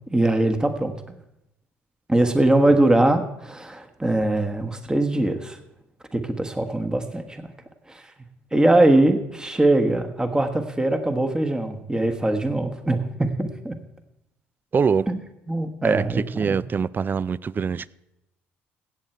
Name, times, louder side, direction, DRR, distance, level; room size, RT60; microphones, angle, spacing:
voice 1, 0.1-1.2 2.1-5.6 6.1-7.4 7.9-8.0 8.5-13.7 15.1-15.2 15.5-16.6, right 1 dB, 15° right, 1.4 m, -22 dB
voice 2, 14.7-15.1 15.8-17.9, right 6 dB, 35° right, 0.4 m, -23 dB
16.5 x 7.8 x 4.6 m
hypercardioid pair, 60°, 6 cm